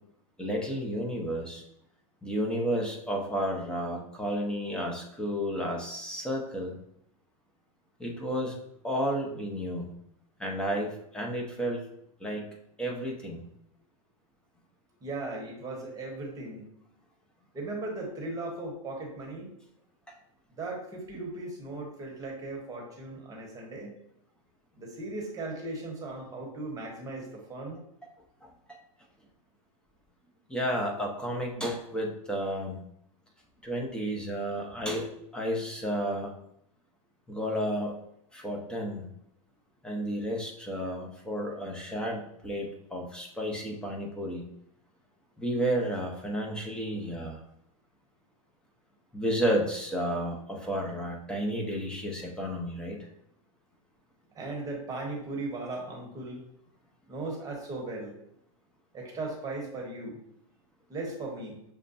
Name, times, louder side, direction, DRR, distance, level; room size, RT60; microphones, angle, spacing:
voice 1, 0.4-1.6 2.2-6.7 8.0-8.6 8.8-9.9 10.4-11.8 12.2-12.5 12.8-13.4 20.1-20.2 28.4-28.5 30.5-32.8 33.6-36.3 37.3-37.9 38.3-39.0 39.8-44.5 45.4-47.4 49.1-53.1, equal, 5° left, -1 dB, 0.7 m, -32 dB
voice 2, 15.0-16.7 17.5-19.5 20.5-23.9 24.8-27.8 54.3-56.4 57.1-58.1 58.9-60.2 60.9-61.6, right 2 dB, 20° right, -1 dB, 1.1 m, -37 dB
6.4 x 2.2 x 2.6 m, 0.74 s
hypercardioid pair, 120°, 18 cm